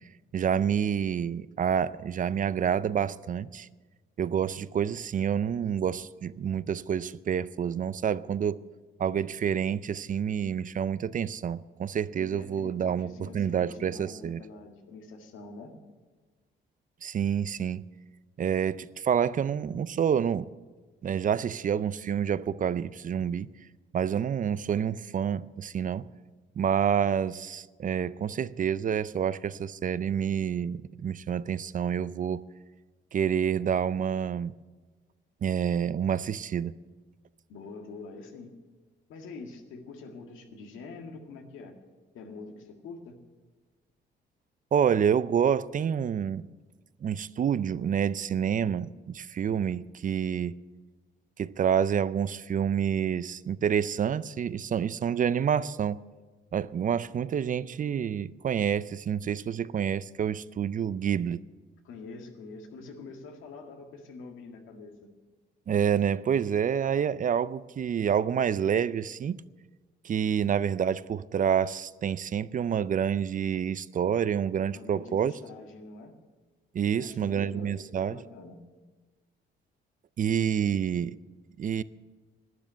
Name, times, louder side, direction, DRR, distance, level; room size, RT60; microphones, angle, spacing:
voice 1, 0.3-3.7 4.2-8.6 9.0-14.4 17.0-17.9 18.4-20.5 21.0-23.5 23.9-26.1 26.6-32.4 33.1-34.6 35.4-36.8 44.7-46.5 47.0-50.6 51.4-56.0 56.5-61.4 65.7-69.4 70.0-75.3 76.7-78.2 80.2-81.2 81.6-81.8, right 8 dB, 40° right, 0.5 m, -28 dB
voice 2, 12.2-15.7 37.5-38.5 39.1-41.7 42.1-43.2 61.8-65.1 74.7-76.1 76.9-78.6, left 4 dB, 85° left, 1.9 m, -45 dB
12.0 x 9.8 x 9.0 m
cardioid pair, 90°, 20 cm